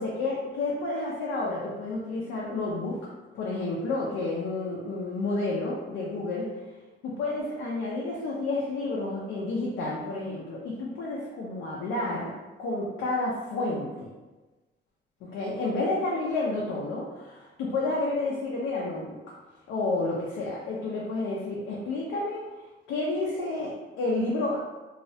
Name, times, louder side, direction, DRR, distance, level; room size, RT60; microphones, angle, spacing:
voice 1, 0.0-3.1 3.4-6.5 7.1-14.1 15.2-19.2 19.7-22.5 22.9-24.6, left 2 dB, 85° left, -4 dB, 0.4 m, -30 dB
2.3 x 2.0 x 2.7 m, 1.2 s
cardioid pair, 90°, 20 cm